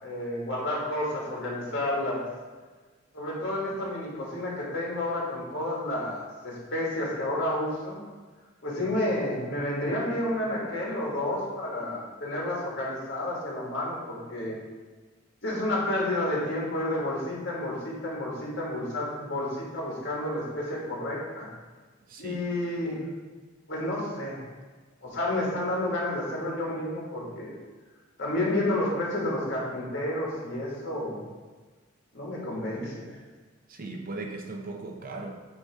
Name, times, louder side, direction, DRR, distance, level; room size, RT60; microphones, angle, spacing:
voice 1, 0.0-2.2 3.1-8.0 8.6-14.6 15.4-21.5 22.2-23.1 23.7-24.5 25.0-27.5 28.2-31.2 32.1-33.0, left 1 dB, 60° left, -4 dB, 1.8 m, -30 dB
voice 2, 22.1-22.4 33.7-35.3, right 2 dB, 45° right, 3 dB, 0.6 m, -37 dB
8.1 x 2.9 x 4.7 m, 1.4 s
head